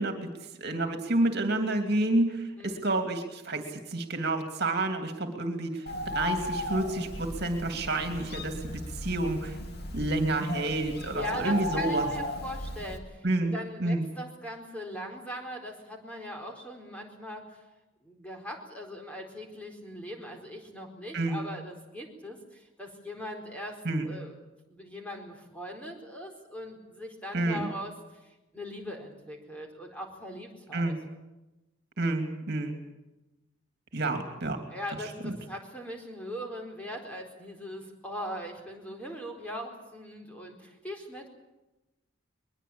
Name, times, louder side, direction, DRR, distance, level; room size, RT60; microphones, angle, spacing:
voice 1, 0.0-9.6 9.9-12.1 13.2-13.5 13.8-14.1 21.1-21.4 23.8-24.1 27.3-27.7 30.7-30.9 32.0-32.8 33.9-34.6 35.2-35.4, right 2 dB, 50° right, 5 dB, 2.7 m, -29 dB
Bird, 5.9-13.0, left 1 dB, 50° left, 2.7 m, -36 dB
voice 2, 11.1-17.6 18.0-24.3 24.7-30.9 34.7-41.3, equal, 5° left, 2 dB, 4.3 m, -40 dB
22.0 x 21.5 x 8.7 m, 1.0 s
head